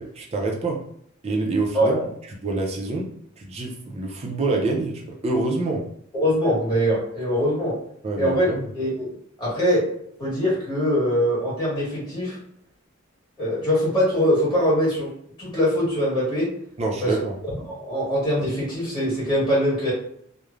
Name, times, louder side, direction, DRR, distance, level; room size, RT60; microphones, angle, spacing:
voice 1, 0.2-0.8 1.2-2.0 2.4-3.1 3.4-5.8 8.0-8.7 16.8-17.4, right 3 dB, 30° right, 0 dB, 0.5 m, -26 dB
voice 2, 6.1-7.7 8.2-9.1 9.4-9.9 10.2-12.3 13.4-15.1 15.4-16.5 17.0-17.1 17.6-19.9, equal, 20° left, -8 dB, 1.5 m, -22 dB
3.0 x 2.1 x 2.4 m, 0.68 s
head